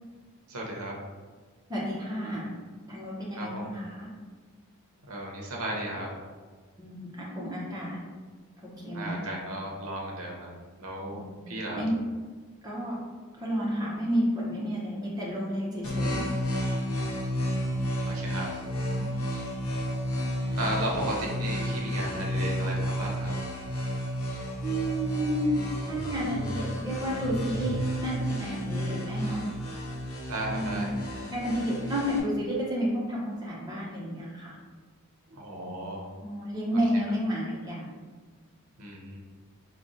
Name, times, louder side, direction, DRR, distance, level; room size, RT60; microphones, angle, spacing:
voice 1, 0.5-1.0 3.3-3.7 5.1-6.2 8.9-11.8 17.4-18.5 20.6-23.4 30.3-30.9 35.3-36.1 36.7-36.8 38.8-39.2, right 1 dB, 75° right, -2 dB, 0.8 m, -35 dB
voice 2, 1.7-2.5 2.9-4.1 6.8-8.0 8.8-9.2 11.0-11.4 11.7-11.9 12.6-13.0 13.4-16.3 19.0-19.1 24.6-29.5 30.5-31.0 31.3-34.5 35.5-35.8 36.2-37.9, equal, 15° right, -5 dB, 0.8 m, -31 dB
sound 1, 15.8-32.2, equal, 75° left, 0.8 m, -32 dB
4.8 x 2.3 x 2.6 m, 1.4 s
head